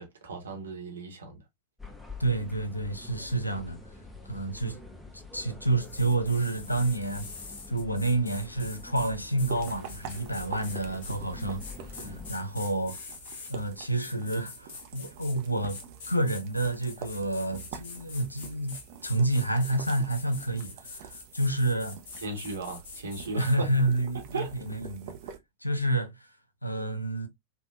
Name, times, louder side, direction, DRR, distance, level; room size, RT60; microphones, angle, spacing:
voice 1, 0.0-1.4 12.0-12.2 22.2-23.7 24.3-24.5, right 3 dB, 70° right, 0.9 m, -36 dB
sound 1, 1.8-12.3, left 3 dB, 5° left, 0.5 m, -46 dB
voice 2, 2.2-3.8 4.3-4.8 5.3-7.3 7.7-11.6 11.9-13.0 13.5-15.8 16.1-18.7 19.0-22.0 23.3-25.2 25.6-26.2 26.6-27.3, right 2 dB, 85° left, 0.5 m, -29 dB
sound 2, 5.8-13.5 14.0-15.4 15.7-23.6, left 4 dB, 55° left, 0.7 m, -45 dB
sound 3, 9.4-25.4, right 8 dB, 50° right, 0.5 m, -46 dB
3.2 x 2.1 x 2.4 m
figure-of-eight pair, 90°, 0 cm